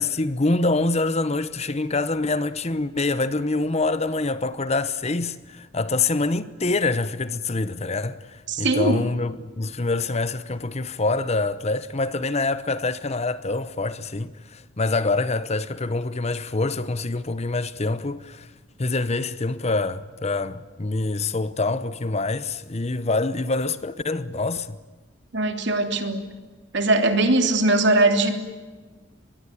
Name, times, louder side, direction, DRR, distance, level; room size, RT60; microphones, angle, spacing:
voice 1, 0.0-18.5 18.8-24.8, left 3 dB, 35° left, 0.9 m, -25 dB
voice 2, 8.5-9.1 25.3-26.2 26.7-28.4, right 2 dB, 60° right, 3.1 m, -20 dB
24.5 x 21.5 x 8.7 m
head